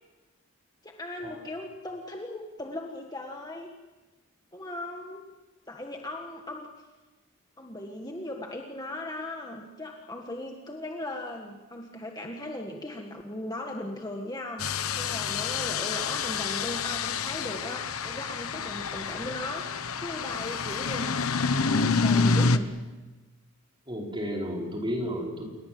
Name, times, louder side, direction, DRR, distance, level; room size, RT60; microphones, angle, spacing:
voice 1, 0.8-3.7 4.5-5.2 5.7-6.7 7.6-22.7, left 1 dB, 15° left, 2 dB, 1.7 m, -38 dB
sound 1, 14.6-22.6, left 4 dB, 75° left, 1.1 m, -28 dB
voice 2, 23.9-25.5, equal, 20° right, 0 dB, 4.9 m, -32 dB
28.5 x 22.5 x 7.8 m, 1.2 s
head